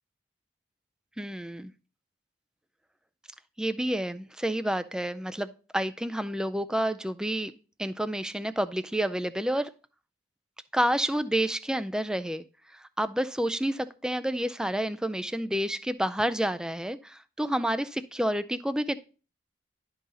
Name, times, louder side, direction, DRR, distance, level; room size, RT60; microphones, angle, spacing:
voice 1, 1.2-1.7 3.6-7.5 7.8-9.7 10.7-12.4 13.0-19.0, right 1 dB, 5° right, 12 dB, 0.3 m, -29 dB
11.5 x 3.9 x 4.0 m, 0.36 s
head